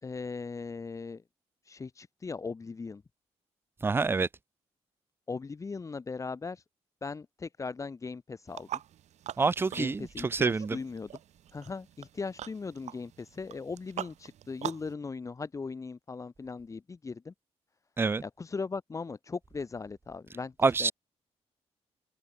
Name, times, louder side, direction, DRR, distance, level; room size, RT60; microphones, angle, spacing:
voice 1, 0.0-1.2 1.6-3.0 5.3-6.6 7.0-8.8 9.7-11.1 11.5-17.3 18.2-20.5 20.8-20.9, left 4 dB, 30° left, 1.8 m, -38 dB
voice 2, 3.8-4.3 9.4-10.1 10.3-10.8 18.0-18.2 20.6-20.9, right 4 dB, 20° right, 0.5 m, -26 dB
sound 1, 8.5-14.9, right 11 dB, 80° right, 2.5 m, -43 dB
cardioid pair, 135°, 12 cm